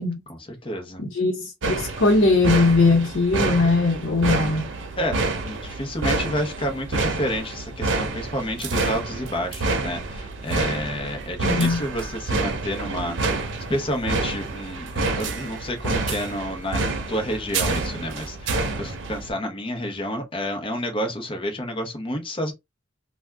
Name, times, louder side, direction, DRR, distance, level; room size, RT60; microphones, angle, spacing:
voice 1, 0.3-1.0 5.0-22.5, equal, 30° left, 0.8 m, -30 dB
voice 2, 1.0-4.7 11.4-11.8, left 3 dB, 80° left, 0.8 m, -20 dB
sound 1, 1.6-19.3, right 3 dB, 75° right, 0.7 m, -28 dB
2.6 x 2.2 x 3.4 m
head